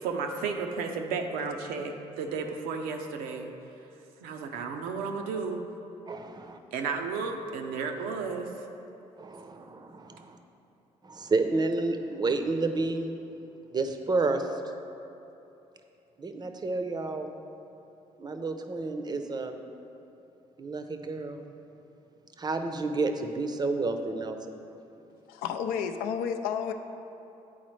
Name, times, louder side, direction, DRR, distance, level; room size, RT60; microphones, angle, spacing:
voice 1, 0.0-3.5 4.2-5.6 6.7-8.5, right 5 dB, 80° right, 4 dB, 0.5 m, -33 dB
voice 2, 6.1-6.6 9.2-10.4 11.0-13.1 13.7-14.6 16.2-17.3 18.2-19.6 20.6-21.4 22.4-24.6, right 3 dB, 30° right, 6 dB, 0.5 m, -30 dB
voice 3, 25.3-26.7, left 7 dB, 80° left, 6 dB, 0.4 m, -31 dB
8.7 x 4.0 x 3.1 m, 2.9 s
supercardioid pair, 65°, 15 cm